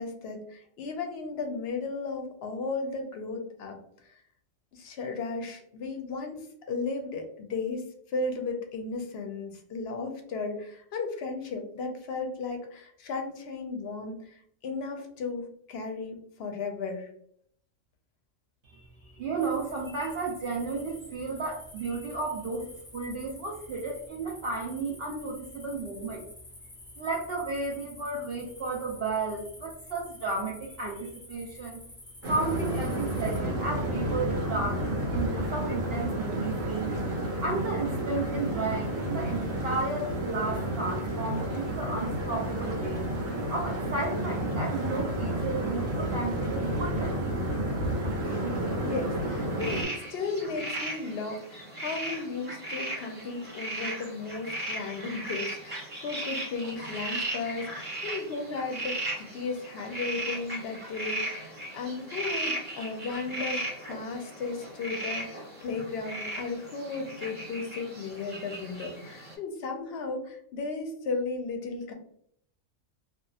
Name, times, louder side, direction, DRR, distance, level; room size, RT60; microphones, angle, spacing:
voice 1, 0.0-4.2 4.7-17.1 48.2-48.6 48.8-71.9, left 4 dB, 60° left, 4 dB, 0.7 m, -35 dB
voice 2, 18.7-26.3 27.0-31.8 32.3-34.8 35.1-36.9 37.4-43.1 43.5-47.4, right 3 dB, 60° right, -2 dB, 0.7 m, -33 dB
sound 1, 19.4-33.4, left 2 dB, 30° left, 0.6 m, -49 dB
sound 2, 32.2-49.8, right 1 dB, 90° right, 1.2 m, -31 dB
sound 3, 49.6-69.3, right 1 dB, 35° right, 1.0 m, -37 dB
2.9 x 2.4 x 2.3 m, 0.66 s
omnidirectional pair, 1.3 m